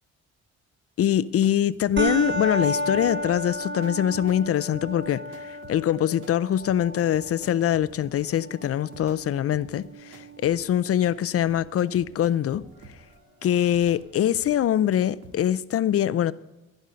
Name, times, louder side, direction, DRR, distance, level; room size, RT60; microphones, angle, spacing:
voice 1, 1.0-12.6 13.4-16.3, left 11 dB, 50° left, 0.5 m, -23 dB
sound 1, 1.0-9.2 9.5-15.4, right 3 dB, 80° right, 1.9 m, -50 dB
sound 2, 2.0-10.9, right 1 dB, 35° right, 1.6 m, -33 dB
16.5 x 5.4 x 7.6 m
cardioid pair, 90°, 30 cm